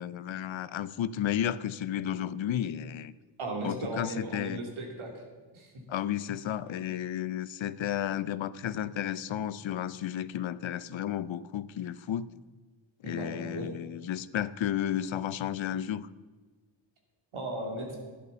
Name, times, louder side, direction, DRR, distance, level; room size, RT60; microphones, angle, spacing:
voice 1, 0.0-3.1 3.6-4.6 5.9-12.3 13.0-16.1, left 10 dB, 70° left, 17 dB, 0.6 m, -33 dB
voice 2, 3.4-5.1 5.5-5.7 13.0-13.7 17.3-18.0, right 2 dB, 85° right, 1 dB, 2.8 m, -36 dB
11.0 x 11.0 x 6.8 m, 1.3 s
wide cardioid pair, 90°, 47 cm